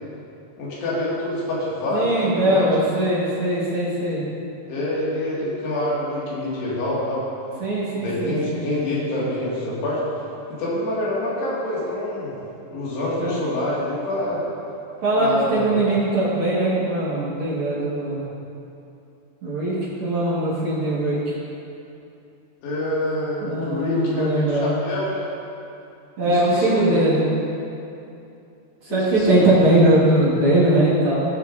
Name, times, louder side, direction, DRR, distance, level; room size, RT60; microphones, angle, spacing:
voice 1, 0.6-2.7 4.7-7.3 8.0-10.0 10.5-12.3 12.7-14.4 15.1-15.8 22.6-25.3 26.2-26.9 28.9-29.8, left 1 dB, 75° left, -8 dB, 4.1 m, -26 dB
voice 2, 1.9-4.2 7.6-8.6 13.2-13.4 15.0-18.3 19.4-21.2 23.4-24.7 26.2-27.2 28.8-31.2, right 1 dB, 55° right, -8 dB, 1.5 m, -20 dB
17.5 x 6.6 x 2.6 m, 2.7 s
omnidirectional pair, 4.9 m